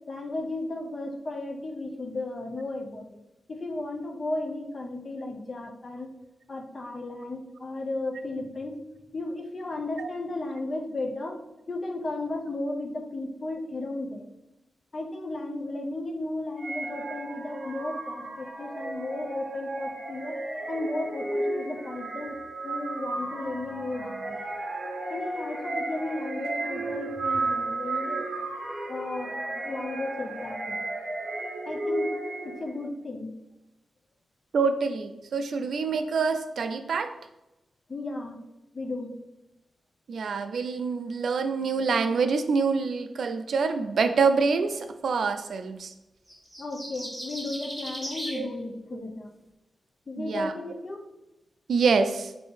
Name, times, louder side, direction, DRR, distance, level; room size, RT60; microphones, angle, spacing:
voice 1, 0.0-3.2 3.5-6.1 6.5-8.8 9.1-11.4 11.7-14.3 14.9-20.4 20.7-22.4 22.6-24.4 25.1-28.3 28.9-30.8 31.7-32.1 32.4-33.3 37.9-38.4 38.7-39.2 46.6-49.3 50.1-51.1, left 2 dB, 35° left, 3 dB, 0.5 m, -34 dB
sound 1, 16.6-32.8, right 2 dB, 45° right, 0.8 m, -33 dB
voice 2, 34.5-37.1 40.1-45.9 48.3-48.5 48.9-49.0 50.2-50.5 51.7-52.3, right 5 dB, 75° right, 8 dB, 0.3 m, -26 dB
sound 2, 46.3-48.4, equal, 5° right, 1.1 m, -37 dB
3.5 x 2.7 x 4.2 m, 0.95 s
wide cardioid pair, 145°, 0 cm